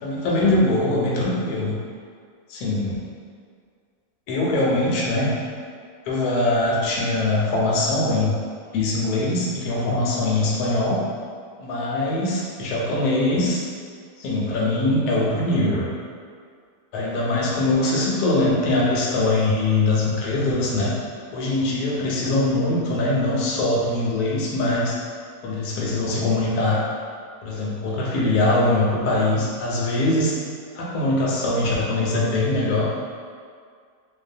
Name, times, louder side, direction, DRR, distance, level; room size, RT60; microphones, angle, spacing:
voice 1, 0.0-1.7 2.5-2.9 4.3-5.3 6.1-8.3 8.7-11.0 11.6-13.6 14.2-15.9 16.9-20.9 21.3-25.0 25.4-26.8 27.4-30.4 30.7-32.9, left 2 dB, 75° left, -4 dB, 1.1 m, -22 dB
2.7 x 2.1 x 2.5 m, 2.1 s
omnidirectional pair, 1.7 m